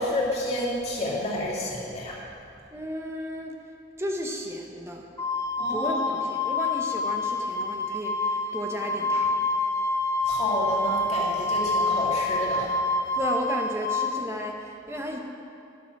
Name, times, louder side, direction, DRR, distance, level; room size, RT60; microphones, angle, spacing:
voice 1, 0.0-2.2 5.6-6.0 10.3-12.7, left 1 dB, 35° left, -5 dB, 2.1 m, -29 dB
voice 2, 2.7-3.6 4.0-5.1 5.6-9.5 13.2-15.2, equal, 15° right, 1 dB, 0.8 m, -34 dB
Wind instrument woodwind instrument, 5.2-14.1, left 2 dB, 15° left, 0.4 m, -27 dB
11.0 x 6.9 x 5.9 m, 2.6 s
head